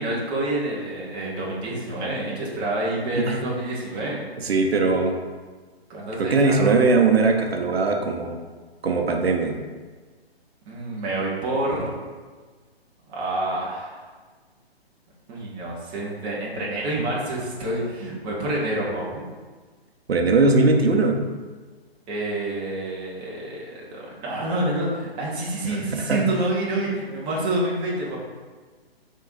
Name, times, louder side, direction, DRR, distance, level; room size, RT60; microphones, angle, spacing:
voice 1, 0.0-4.2 5.9-6.8 10.7-12.0 13.1-14.1 15.3-19.2 22.1-28.2, right 1 dB, 15° right, -5 dB, 0.8 m, -28 dB
voice 2, 4.4-5.2 6.2-8.4 8.8-9.5 20.1-21.2 25.6-26.2, right 3 dB, 75° right, 3 dB, 0.7 m, -20 dB
5.4 x 3.6 x 2.6 m, 1.4 s
figure-of-eight pair, 130°, 32 cm